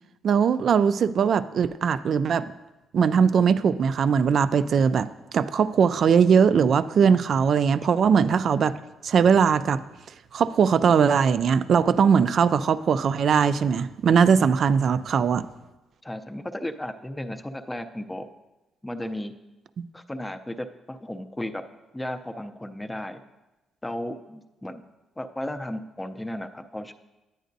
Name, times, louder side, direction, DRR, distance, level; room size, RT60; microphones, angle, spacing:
voice 1, 0.2-2.5 2.9-8.8 9.0-9.8 10.3-15.5 19.8-19.9, right 6 dB, 60° right, 14 dB, 0.3 m, -20 dB
voice 2, 16.0-18.3 18.8-19.3 19.9-21.6 21.9-23.2 23.8-24.8 25.2-26.9, left 1 dB, 10° left, 7 dB, 0.5 m, -34 dB
10.0 x 9.1 x 2.6 m, 1.1 s
cardioid pair, 90°, 0 cm